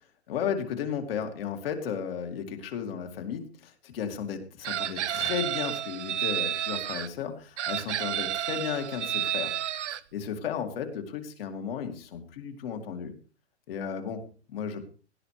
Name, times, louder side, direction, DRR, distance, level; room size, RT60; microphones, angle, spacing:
voice 1, 0.3-9.5 9.9-13.1 13.7-14.8, left 7 dB, 55° left, 5 dB, 2.5 m, -34 dB
Chicken rooster, 4.6-7.1 7.6-10.0, right 11 dB, 80° right, 0.8 m, -31 dB
17.5 x 12.0 x 3.3 m, 0.38 s
hypercardioid pair, 150°, 35 cm